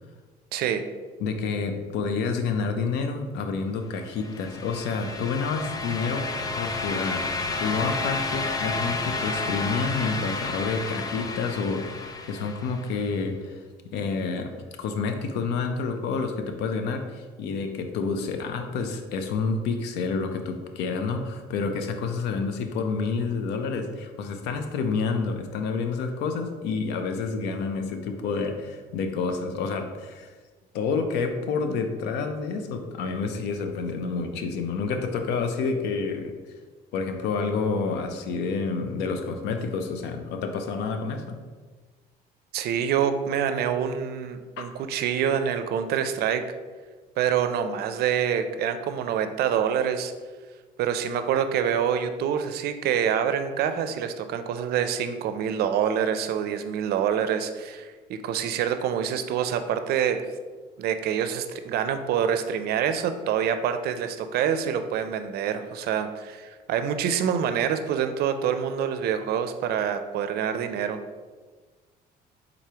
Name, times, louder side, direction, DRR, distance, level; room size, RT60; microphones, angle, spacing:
voice 1, 0.5-0.8 42.5-46.4 47.2-50.1 50.8-60.2 60.8-71.0, right 8 dB, 70° right, 9 dB, 0.4 m, -26 dB
voice 2, 1.2-6.3 6.6-13.6 13.9-14.5 14.8-30.3 30.7-36.3 36.9-41.4 44.6-44.7, left 4 dB, 85° left, 6 dB, 0.6 m, -29 dB
sound 1, 4.1-13.0, left 3 dB, 20° left, 0.4 m, -31 dB
4.7 x 3.9 x 2.9 m, 1.4 s
cardioid pair, 110°, 17 cm